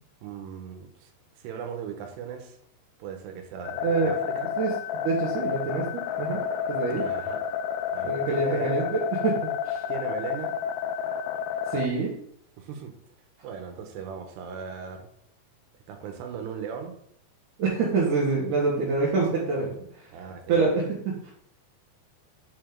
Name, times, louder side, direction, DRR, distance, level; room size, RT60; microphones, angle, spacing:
voice 1, 0.2-1.1 1.4-2.6 3.0-4.5 6.9-7.4 7.9-8.8 9.9-10.5 12.6-12.9 13.4-15.1 15.9-16.9 20.1-20.6, right 7 dB, 85° right, 5 dB, 3.1 m, -37 dB
sound 1, 3.6-11.9, left 8 dB, 85° left, 2.2 m, -30 dB
voice 2, 3.8-4.1 4.6-4.7 5.0-6.4 6.7-7.0 8.0-9.8 11.7-12.1 17.6-19.7 20.5-21.3, right 4 dB, 60° right, -5 dB, 2.4 m, -26 dB
8.1 x 5.0 x 3.8 m, 0.69 s
omnidirectional pair, 4.8 m